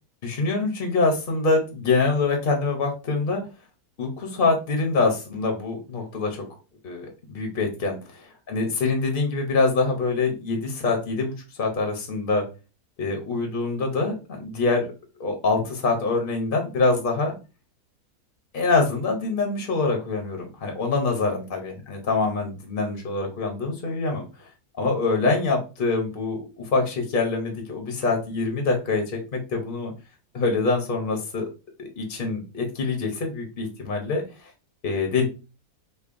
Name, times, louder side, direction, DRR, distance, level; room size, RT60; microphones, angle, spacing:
voice 1, 0.2-3.4 4.0-6.4 6.8-12.4 13.0-14.9 15.2-17.3 18.5-24.5 24.7-29.0 29.3-29.9 30.3-31.5 31.8-34.2 34.8-35.3, left 3 dB, 45° left, 3 dB, 0.8 m, -25 dB
5.3 x 2.1 x 2.5 m, 0.31 s
omnidirectional pair, 1.6 m